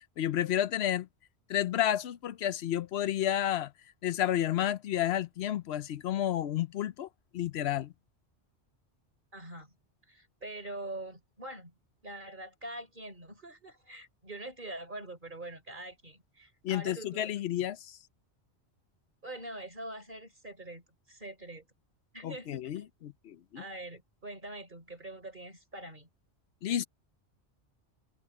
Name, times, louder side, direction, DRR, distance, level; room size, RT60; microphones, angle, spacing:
voice 1, 0.2-1.1 1.5-3.7 4.0-7.1 7.3-7.9 16.6-18.0 22.2-23.6 26.6-26.8, left 11 dB, 70° left, 0.9 m, -31 dB
voice 2, 9.3-9.7 10.1-11.7 12.0-17.3 19.2-21.7 22.1-22.9 23.6-26.1, right 1 dB, 45° right, 4.0 m, -44 dB
omnidirectional pair, 1.2 m